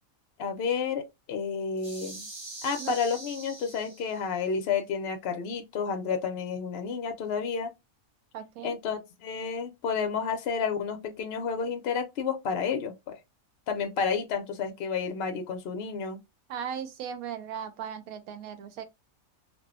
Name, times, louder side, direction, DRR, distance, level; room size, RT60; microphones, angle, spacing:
voice 1, 0.4-2.3 2.6-7.7 8.6-13.2 13.7-16.2, left 6 dB, 65° left, 0.6 m, -31 dB
sound 1, 1.8-4.3, right 2 dB, 30° right, 0.6 m, -43 dB
voice 2, 8.3-8.8 16.5-18.8, right 8 dB, 80° right, 1.0 m, -37 dB
2.6 x 2.3 x 2.4 m
omnidirectional pair, 1.5 m